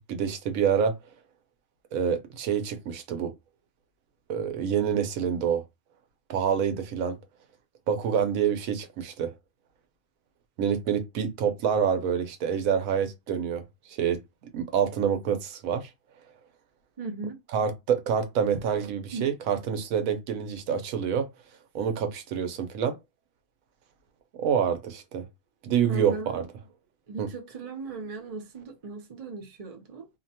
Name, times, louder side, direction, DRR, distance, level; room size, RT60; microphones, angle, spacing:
voice 1, 0.1-0.9 1.9-3.3 4.3-5.6 6.3-7.2 7.9-9.3 10.6-13.6 13.9-14.2 14.5-15.9 17.5-21.3 21.7-22.9 24.4-25.3 25.6-26.4 27.2-27.3, right 7 dB, 90° right, 1.1 m, -27 dB
voice 2, 17.0-17.4 19.1-19.3 25.9-26.5 27.1-30.1, right 4 dB, 40° right, 0.5 m, -37 dB
2.8 x 2.2 x 2.7 m
omnidirectional pair, 1.4 m